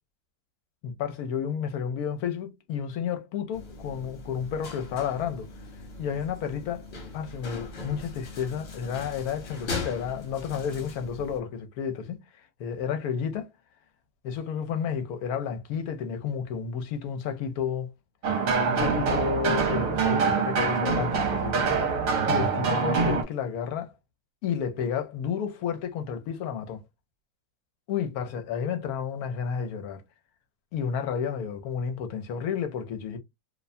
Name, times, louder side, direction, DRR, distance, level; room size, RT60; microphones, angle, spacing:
voice 1, 0.8-5.5 6.0-6.9 7.1-12.2 12.6-13.5 14.2-17.9 18.7-21.8 22.3-23.9 24.4-26.8 27.9-30.0 30.7-33.2, left 7 dB, 75° left, 1.1 m, -31 dB
sound 1, 3.5-11.4, left 3 dB, 55° left, 1.2 m, -40 dB
sound 2, 18.2-23.2, right 5 dB, 65° right, 1.1 m, -25 dB
2.7 x 2.1 x 2.5 m
omnidirectional pair, 1.6 m